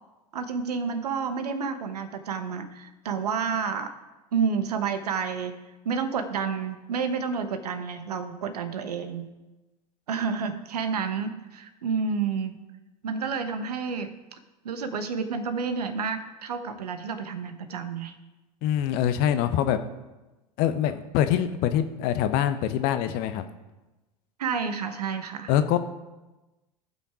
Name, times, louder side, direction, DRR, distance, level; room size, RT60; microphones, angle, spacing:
voice 1, 0.3-3.9 4.3-5.6 5.8-9.3 10.1-12.6 13.0-14.4 14.6-18.1 24.4-25.5, right 5 dB, 75° right, 9 dB, 1.1 m, -30 dB
voice 2, 18.6-19.8 20.6-23.4 25.5-25.8, left 10 dB, 50° left, 10 dB, 0.9 m, -24 dB
15.0 x 5.8 x 4.9 m, 1.1 s
figure-of-eight pair, 85°, 20 cm